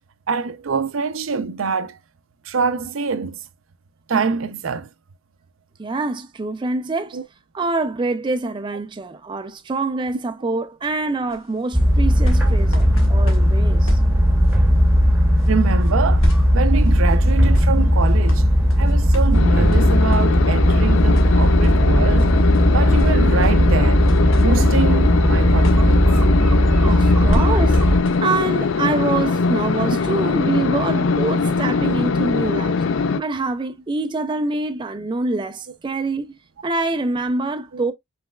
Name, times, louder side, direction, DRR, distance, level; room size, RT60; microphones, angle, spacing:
voice 1, 0.3-2.0 2.4-3.4 4.1-4.9 7.1-7.2 12.4-12.5 15.5-18.5 18.8-22.4 22.7-24.1 24.4-26.1 32.4-32.7, right 5 dB, 80° right, 0.5 m, -25 dB
voice 2, 5.8-7.2 7.5-14.0 26.8-27.8 28.2-32.8 33.2-36.4 36.6-37.9, right 3 dB, 25° right, 0.4 m, -25 dB
sound 1, 11.3-30.1 30.8-30.9, equal, 80° left, 1.5 m, -33 dB
sound 2, 11.7-28.0, equal, 10° right, 1.0 m, -16 dB
sound 3, 19.3-33.2, left 4 dB, 65° left, 0.4 m, -21 dB
5.3 x 3.3 x 2.2 m
head